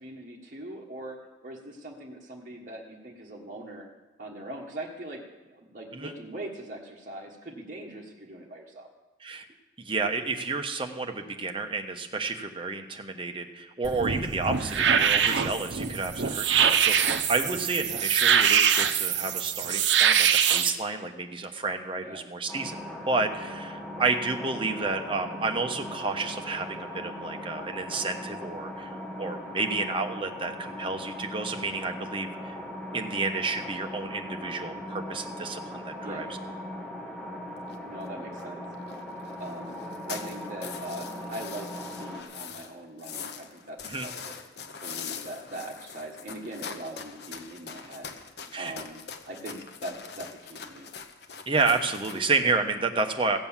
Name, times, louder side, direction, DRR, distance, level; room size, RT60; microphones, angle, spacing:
voice 1, 0.0-3.9 4.2-5.2 5.5-8.9 14.7-14.8 22.0-22.3 32.9-33.2 36.0-36.3 37.9-38.6 39.4-39.7 40.1-41.7 42.0-44.4 44.8-50.9, right 1 dB, 45° right, -1 dB, 1.4 m, -41 dB
voice 2, 9.8-22.8 23.1-32.5 32.9-36.3 43.8-44.1 48.5-48.7 51.5-53.4, right 3 dB, 30° right, 5 dB, 1.1 m, -30 dB
sound 1, 13.8-20.7, right 8 dB, 80° right, 0.8 m, -24 dB
sound 2, 22.5-42.2, left 1 dB, 5° left, 1.9 m, -39 dB
sound 3, 37.7-37.8 38.0-38.1 38.3-38.4 38.7-39.0 39.2-42.7 43.0-52.4, left 6 dB, 60° left, 1.0 m, -42 dB
16.0 x 7.9 x 7.3 m, 1.1 s
head